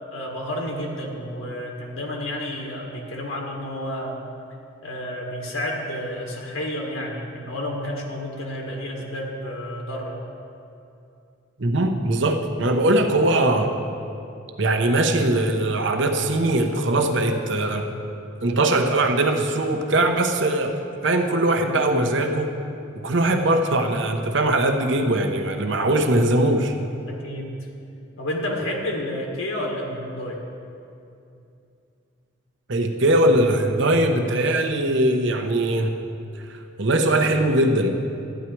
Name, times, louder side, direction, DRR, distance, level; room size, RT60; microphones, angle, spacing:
voice 1, 0.1-4.2 4.8-10.2 27.1-27.5 28.2-30.4, left 1 dB, 85° left, 0 dB, 1.8 m, -30 dB
voice 2, 11.6-13.7 14.6-17.9 18.4-20.8 21.0-22.5 23.0-26.7 32.7-36.0 36.8-37.9, right 1 dB, 60° right, 4 dB, 0.9 m, -21 dB
13.0 x 9.9 x 4.6 m, 2.6 s
head